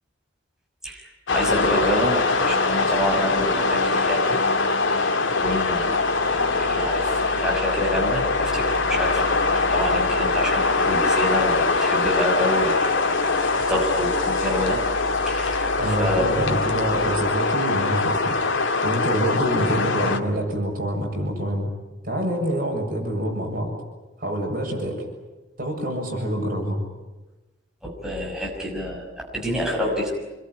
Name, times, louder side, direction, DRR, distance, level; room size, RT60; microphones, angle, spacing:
voice 1, 0.8-4.4 4.9-5.1 5.4-14.8 15.2-16.3 27.8-30.1, equal, 5° right, -3 dB, 6.3 m, -28 dB
sound 1, 1.3-20.2, left 3 dB, 80° left, 2.2 m, -22 dB
voice 2, 15.8-18.4 18.8-21.7 22.0-23.7 24.2-25.0 25.6-26.8, equal, 50° right, 1 dB, 7.2 m, -26 dB
27.5 x 22.0 x 9.8 m, 1.1 s
head